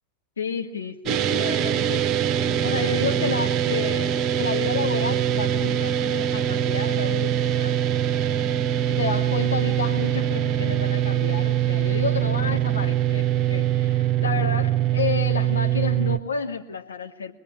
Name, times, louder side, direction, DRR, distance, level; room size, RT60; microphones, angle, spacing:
voice 1, 0.4-2.1 2.6-7.8 8.7-17.3, left 5 dB, 70° left, 4 dB, 2.6 m, -31 dB
sound 1, 1.1-16.2, right 10 dB, 30° right, 1.1 m, -23 dB
26.0 x 20.0 x 9.8 m, 0.92 s
figure-of-eight pair, 90°, 0 cm